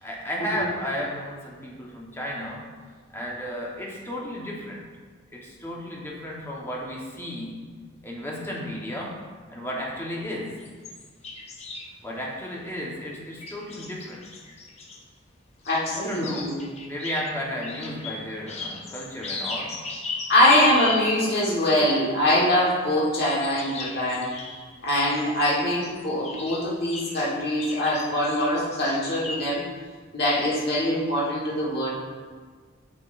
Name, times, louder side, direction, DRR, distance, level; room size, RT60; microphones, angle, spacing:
voice 1, 0.0-2.6 3.1-4.8 5.3-7.6 8.0-9.2 9.5-10.6 12.0-14.3 15.9-16.5 16.9-19.8 20.4-20.8, equal, 10° left, -4 dB, 1.2 m, -33 dB
sound 1, 10.6-11.9 13.4-15.0 15.6-21.4 23.1-27.3 27.6-29.4, left 3 dB, 35° left, 0.7 m, -37 dB
voice 2, 15.7-16.6 20.3-24.3 24.8-29.6 30.1-31.9, left 1 dB, 55° left, -7 dB, 1.5 m, -23 dB
8.8 x 6.0 x 2.6 m, 1.5 s
head